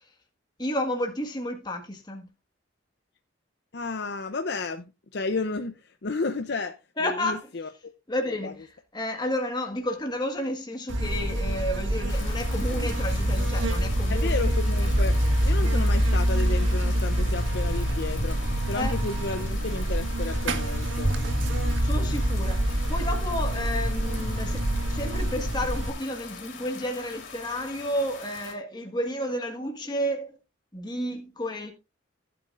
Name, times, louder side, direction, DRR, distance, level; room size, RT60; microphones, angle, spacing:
voice 1, 0.6-2.3 7.0-7.5 8.1-8.7 8.9-14.3 15.6-15.7 18.7-19.0 21.8-30.4 30.7-31.7, left 1 dB, 20° left, 1.6 m, -31 dB
voice 2, 3.7-6.8 7.0-7.7 8.4-8.5 14.1-15.1 15.4-18.4 18.7-21.2, left 3 dB, 60° left, 0.7 m, -32 dB
Buzz, 10.9-25.9, equal, 75° right, 1.7 m, -25 dB
sound 1, 12.1-28.5, left 5 dB, 75° left, 3.4 m, -43 dB
15.5 x 8.5 x 2.5 m
head